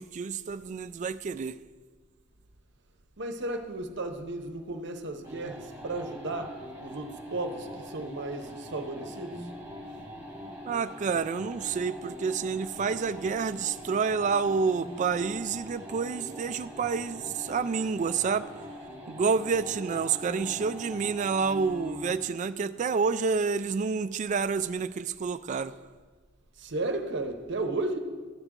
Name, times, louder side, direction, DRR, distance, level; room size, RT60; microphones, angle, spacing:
voice 1, 0.0-1.6 10.7-18.5 19.1-25.7, right 5 dB, 40° right, 0.3 m, -29 dB
voice 2, 3.2-9.5 26.5-28.0, right 2 dB, 60° right, 0.8 m, -34 dB
sound 1, 5.2-22.3, equal, 15° right, 2.3 m, -43 dB
13.5 x 8.0 x 3.7 m
head